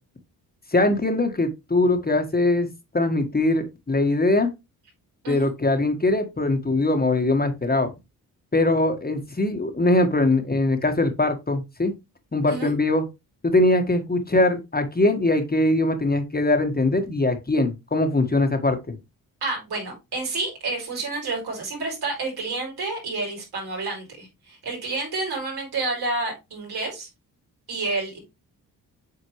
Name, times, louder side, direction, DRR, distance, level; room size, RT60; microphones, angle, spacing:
voice 1, 0.7-2.7 2.9-4.5 5.3-7.9 8.5-11.9 12.3-13.0 13.4-18.8, left 2 dB, 25° left, 1.5 m, -21 dB
voice 2, 19.4-27.1 27.7-28.2, right 3 dB, 75° right, 4.2 m, -29 dB
7.8 x 4.3 x 3.1 m
cardioid pair, 60°, 38 cm